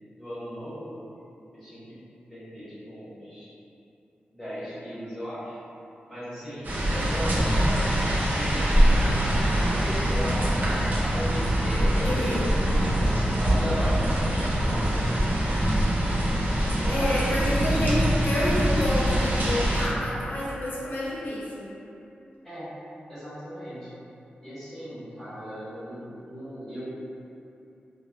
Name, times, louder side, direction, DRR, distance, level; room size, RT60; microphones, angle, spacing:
voice 1, 0.1-1.1 1.5-2.0 2.3-3.5 4.3-5.5 6.1-15.4 16.6-17.7 22.4-22.7 23.1-23.9 24.4-26.8, equal, 10° left, -14 dB, 0.9 m, -37 dB
sound 1, 6.6-19.9, equal, 55° right, 0.5 m, -24 dB
voice 2, 12.0-12.5 16.9-21.7, left 1 dB, 65° left, -7 dB, 0.7 m, -29 dB
3.0 x 2.0 x 2.2 m, 2.8 s
cardioid pair, 60°, 3 cm